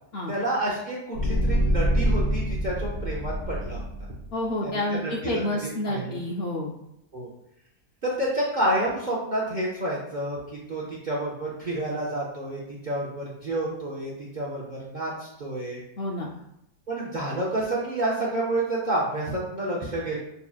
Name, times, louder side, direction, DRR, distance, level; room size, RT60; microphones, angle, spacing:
voice 1, 0.3-3.9 4.6-6.2 7.1-7.3 8.0-10.4 10.7-15.8 16.9-20.2, right 1 dB, 50° right, -4 dB, 0.5 m, -29 dB
sound 1, 1.1-4.3, equal, 50° left, 0.8 m, -25 dB
voice 2, 4.3-6.7 16.0-16.3, left 1 dB, 80° left, -1 dB, 0.5 m, -29 dB
6.6 x 2.8 x 2.3 m, 0.81 s
omnidirectional pair, 1.6 m